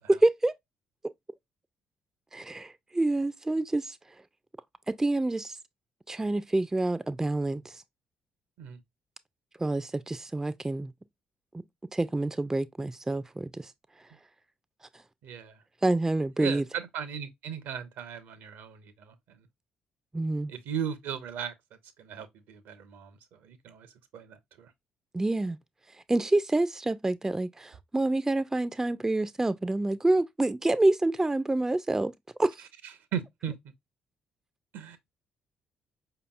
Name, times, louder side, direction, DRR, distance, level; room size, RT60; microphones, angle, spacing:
voice 1, 0.1-0.5 2.3-4.0 4.9-5.6 6.1-7.8 9.6-10.9 11.9-13.7 15.8-16.6 20.1-20.5 25.1-25.6 26.1-32.1 32.4-32.6, right 2 dB, 10° right, 0.4 m, -27 dB
voice 2, 15.2-15.6 16.4-19.5 20.5-24.7 32.6-33.6 34.7-35.0, right 8 dB, 60° right, 0.6 m, -38 dB
5.0 x 2.9 x 2.3 m
figure-of-eight pair, 45°, 4 cm